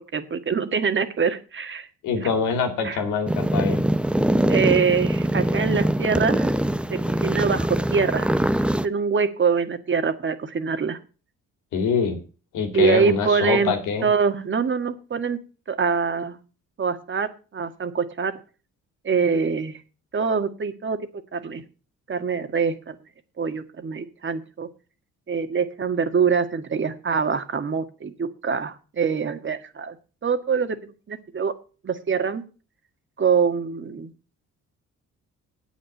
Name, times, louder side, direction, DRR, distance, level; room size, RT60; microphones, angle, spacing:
voice 1, 0.1-1.9 2.2-2.3 2.8-3.0 4.5-6.5 6.9-8.3 8.8-11.0 12.7-13.7 14.0-15.4 15.7-16.4 16.8-18.3 19.0-19.8 20.1-21.0 21.3-21.6 22.1-23.0 23.4-24.7 25.3-30.0 30.2-31.5 31.8-32.4 33.2-34.1, right 5 dB, 40° right, 8 dB, 1.7 m, -24 dB
voice 2, 2.0-3.8 11.7-12.2 12.5-14.1, left 5 dB, 90° left, 5 dB, 2.6 m, -24 dB
sound 1, 3.3-8.9, right 1 dB, 5° right, 0.6 m, -23 dB
8.5 x 8.5 x 7.0 m, 0.36 s
cardioid pair, 90°, 30 cm